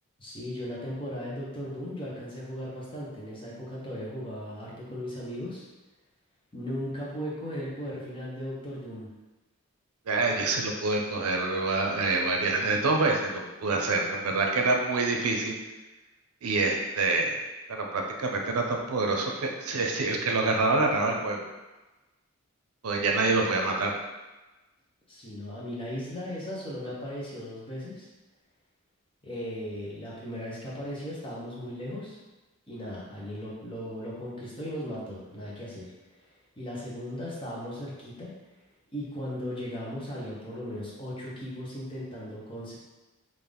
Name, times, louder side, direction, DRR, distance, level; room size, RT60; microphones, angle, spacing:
voice 1, 0.2-5.6 6.5-9.1 25.1-28.1 29.2-32.2 32.7-35.9 36.6-38.3 38.9-42.8, equal, 25° left, -6 dB, 0.8 m, -37 dB
voice 2, 10.1-15.5 16.4-17.4 17.7-21.4 22.8-23.9, right 3 dB, 80° right, 1 dB, 0.6 m, -26 dB
3.7 x 2.5 x 3.4 m, 1.1 s
head